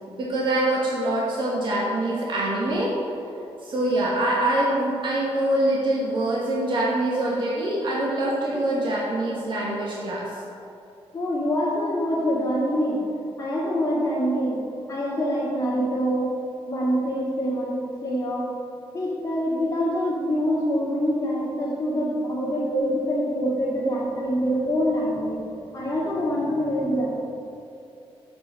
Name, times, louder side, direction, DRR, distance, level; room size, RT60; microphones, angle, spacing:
voice 1, 0.2-2.9 3.6-10.3 22.7-22.8, right 1 dB, 50° right, -5 dB, 1.3 m, -24 dB
voice 2, 11.1-13.0 13.4-14.6 14.9-16.3 16.7-18.5 18.9-25.4 25.7-27.1, equal, 35° left, -10 dB, 2.1 m, -25 dB
7.6 x 5.3 x 6.0 m, 2.7 s
wide cardioid pair, 130°, 10 cm